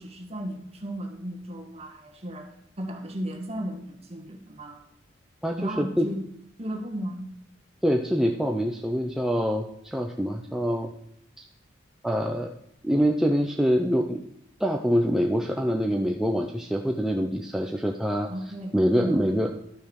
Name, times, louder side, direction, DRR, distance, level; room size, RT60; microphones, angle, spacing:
voice 1, 0.0-4.8 5.6-6.2 6.6-7.3 18.3-19.4, right 1 dB, 35° right, 2 dB, 1.8 m, -35 dB
voice 2, 5.4-6.1 7.8-10.9 11.4-11.5 12.0-12.5 12.8-14.2 14.6-18.3 18.7-19.5, equal, ahead, 1 dB, 0.6 m, -25 dB
12.0 x 6.3 x 6.4 m, 0.72 s
head